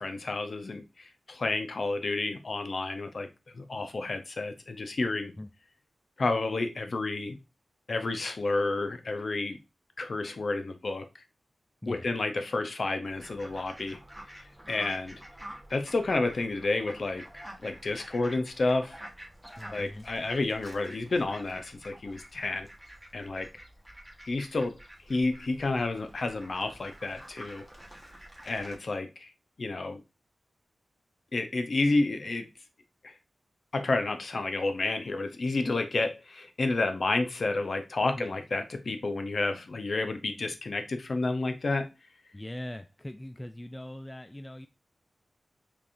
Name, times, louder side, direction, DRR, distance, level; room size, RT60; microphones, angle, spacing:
voice 1, 0.0-3.3 3.5-5.3 6.2-7.4 7.9-9.6 10.0-11.1 11.9-14.0 14.3-15.2 15.7-19.0 19.7-22.7 23.1-23.6 24.2-24.8 25.1-27.6 28.4-29.3 29.6-30.0 31.3-32.5 33.0-33.1 33.7-41.9, left 3 dB, 55° left, 0.7 m, -30 dB
Fowl, 13.0-28.7, right 1 dB, 5° right, 1.1 m, -48 dB
voice 2, 19.6-20.1 38.2-38.3 42.3-44.7, left 1 dB, 15° left, 0.3 m, -41 dB
5.5 x 3.4 x 2.5 m
wide cardioid pair, 125°, 0 cm